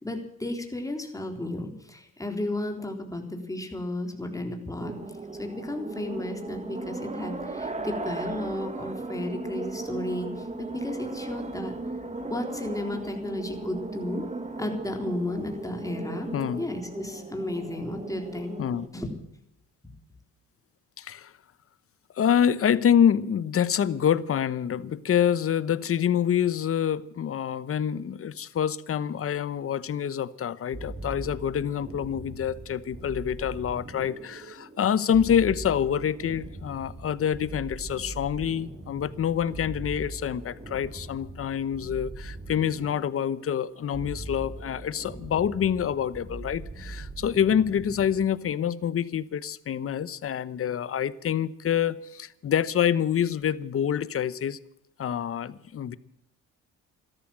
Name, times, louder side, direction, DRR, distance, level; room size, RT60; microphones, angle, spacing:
voice 1, 0.0-5.0 5.4-11.7 12.3-14.3 14.6-16.3 16.6-18.6 18.9-19.1, left 1 dB, 10° left, 3 dB, 3.7 m, -33 dB
sound 1, 4.8-18.9, right 3 dB, 25° right, 2.0 m, -37 dB
voice 2, 16.3-16.6 18.6-18.9 21.0-21.3 22.2-54.6 55.0-55.9, left 9 dB, 50° left, 17 dB, 0.9 m, -26 dB
sound 2, 30.7-48.3, right 2 dB, 40° right, 5.7 m, -41 dB
13.5 x 13.0 x 7.5 m, 0.77 s
cardioid pair, 90°, 30 cm